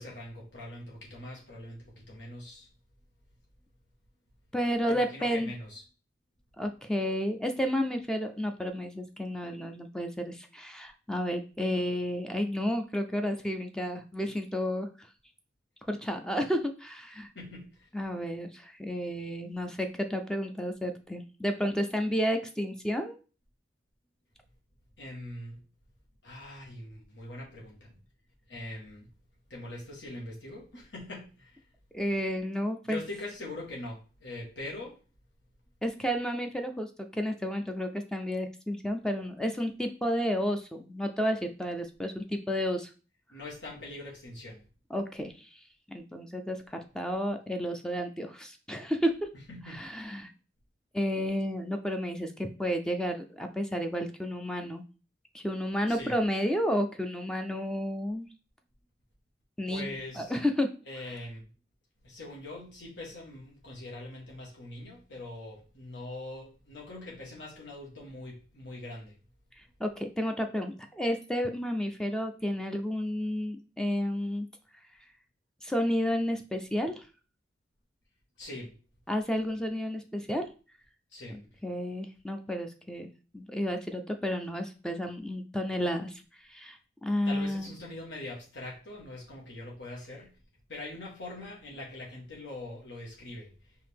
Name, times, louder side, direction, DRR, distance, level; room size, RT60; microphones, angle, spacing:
voice 1, 0.0-2.7 4.9-5.8 17.3-17.7 25.0-25.6 26.2-28.0 28.5-29.1 29.5-31.6 32.8-35.0 43.3-44.6 49.5-49.8 55.9-56.2 59.7-60.4 60.9-61.4 62.0-69.2 78.4-78.7 81.1-81.4 87.2-90.4 90.7-93.5, left 2 dB, 80° left, 1.4 m, -42 dB
voice 2, 4.5-5.5 6.6-15.1 15.9-17.3 17.9-23.2 31.9-33.0 35.8-42.9 44.9-45.6 45.9-49.3 49.7-50.3 50.9-54.9 55.3-58.3 59.6-59.9 60.2-60.7 69.6-74.5 75.6-77.1 79.1-80.5 81.6-86.2 86.5-87.7, equal, 5° left, 0.4 m, -31 dB
4.9 x 2.7 x 3.4 m
head